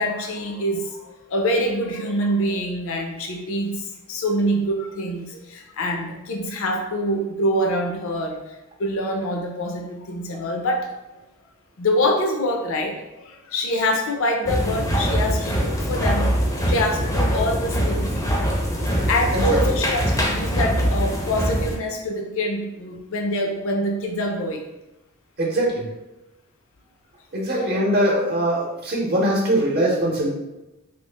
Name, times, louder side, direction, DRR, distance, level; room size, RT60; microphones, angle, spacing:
voice 1, 0.0-8.4 8.8-10.9 11.8-16.4 16.7-18.2 19.0-24.7 27.5-27.8, equal, 65° left, 2 dB, 0.5 m, -25 dB
sound 1, 14.4-21.8, equal, 15° left, 0.5 m, -23 dB
voice 2, 25.4-25.9 27.3-30.3, right 1 dB, 50° right, -4 dB, 0.7 m, -22 dB
3.1 x 2.4 x 3.3 m, 1.0 s
head